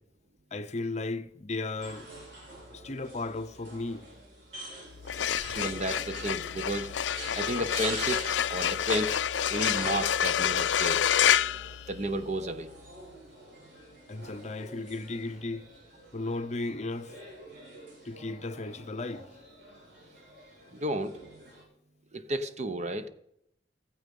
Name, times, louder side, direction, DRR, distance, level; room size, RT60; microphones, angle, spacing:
voice 1, 0.5-2.1 2.7-4.1 14.1-15.7 16.1-17.2 18.0-19.3, left 2 dB, 40° left, 0.7 m, -35 dB
sound 1, 1.7-21.6, right 1 dB, 80° right, 7.5 m, -46 dB
sound 2, 5.0-12.4, left 9 dB, 85° left, 0.5 m, -28 dB
voice 2, 5.5-6.9 7.4-9.2 9.5-11.0 11.9-12.7 20.7-21.1 22.1-23.1, right 1 dB, 40° right, 0.9 m, -32 dB
16.0 x 15.0 x 5.4 m
head